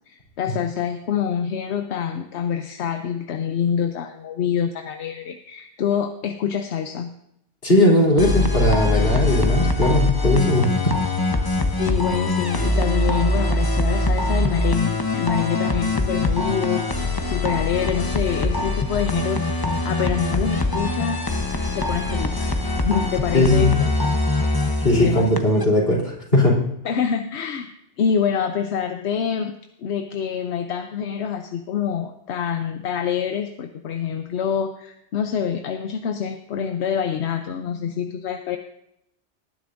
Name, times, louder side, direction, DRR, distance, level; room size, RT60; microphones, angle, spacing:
voice 1, 0.1-7.1 11.8-21.2 21.7-22.4 22.8-23.9 24.6-25.3 26.8-27.7 28.0-29.5 29.8-38.6, left 7 dB, 85° left, 7 dB, 1.0 m, -26 dB
voice 2, 7.6-10.7 23.3-23.7 24.8-26.6, left 1 dB, 60° left, -4 dB, 3.4 m, -18 dB
sound 1, 8.2-25.6, left 2 dB, 25° left, 0.8 m, -23 dB
18.5 x 10.5 x 2.6 m, 0.78 s
omnidirectional pair, 1.1 m